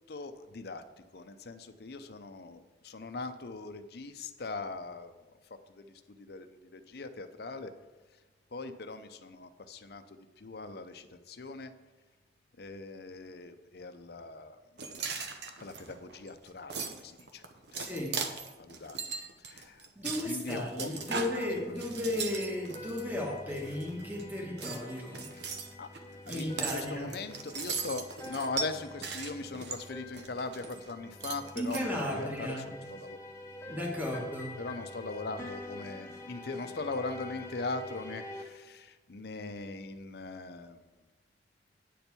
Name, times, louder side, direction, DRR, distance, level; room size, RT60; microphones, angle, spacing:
voice 1, 0.1-0.8 1.1-5.1 5.7-7.7 8.5-11.7 12.6-14.6 15.6-17.4 17.7-17.9 18.6-19.1 19.5-19.9 20.2-21.3 25.3-25.5 25.8-25.9 26.3-33.2 34.1-34.2 34.6-40.8, left 3 dB, 60° left, 9 dB, 0.6 m, -40 dB
sound 1, 14.8-23.0 23.5-24.2 24.6-30.9 31.2-31.8, right 5 dB, 70° right, 0.9 m, -39 dB
voice 2, 17.7-18.2 19.9-25.3 26.3-27.1 31.6-32.7 33.7-34.5, left 1 dB, 10° right, -1 dB, 1.4 m, -35 dB
sound 2, 21.1-38.4, left 1 dB, 15° left, 1.0 m, -46 dB
9.2 x 4.4 x 6.9 m, 1.2 s
head